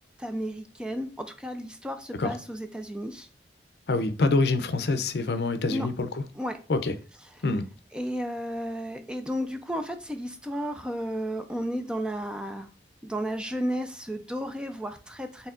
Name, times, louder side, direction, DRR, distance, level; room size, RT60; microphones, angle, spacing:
voice 1, 0.2-3.3 5.7-5.9 6.4-6.6 7.9-12.7 13.0-15.5, equal, 5° right, 0.4 m, -33 dB
voice 2, 3.9-6.2 6.7-6.9 7.4-7.7, left 3 dB, 70° left, 0.5 m, -26 dB
4.5 x 3.3 x 2.5 m
head